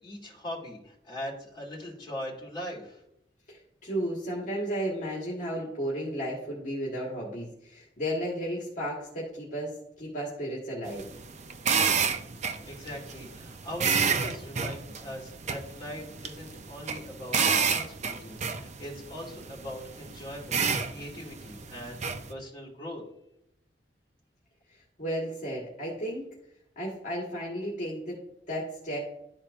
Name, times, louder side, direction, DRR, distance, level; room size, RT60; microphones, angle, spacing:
voice 1, 0.0-3.0 12.6-23.0, equal, 25° left, -4 dB, 2.4 m, -41 dB
voice 2, 3.5-11.1 25.0-26.2 26.7-28.2 28.5-29.0, equal, 45° left, -4 dB, 1.6 m, -33 dB
sound 1, 10.9-22.3, right 6 dB, 40° right, 0.5 m, -30 dB
12.0 x 4.4 x 2.5 m, 0.79 s
head